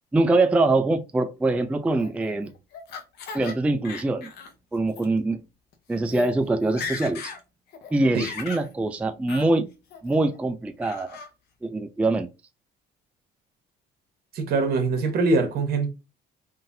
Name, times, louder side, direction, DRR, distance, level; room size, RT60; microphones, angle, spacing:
voice 1, 0.1-2.5 3.3-4.3 4.7-5.4 5.9-7.3 7.9-9.7 10.0-11.2 11.6-12.3, right 2 dB, 10° right, 0.3 m, -23 dB
Laughter, 2.0-3.5 3.8-4.5 4.9-5.1 5.7-5.8 6.0-6.3 6.6-7.4 7.7-8.7 9.3-9.5 9.9-10.4 10.8-11.3, left 5 dB, 75° left, 0.8 m, -37 dB
voice 2, 14.3-15.9, right 3 dB, 65° right, 1.1 m, -23 dB
3.8 x 2.6 x 2.6 m
cardioid pair, 110°, 17 cm